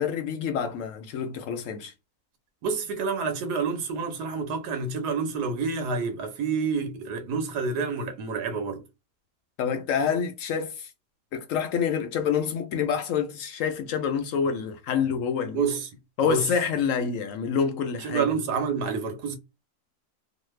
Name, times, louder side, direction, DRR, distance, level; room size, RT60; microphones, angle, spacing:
voice 1, 0.0-1.9 9.6-10.9 11.3-15.6 16.2-18.3, left 7 dB, 70° left, 0.8 m, -27 dB
voice 2, 2.6-8.8 15.5-15.9 16.2-16.5 18.0-19.4, right 5 dB, 85° right, 1.4 m, -28 dB
3.1 x 2.0 x 3.1 m
omnidirectional pair, 1.7 m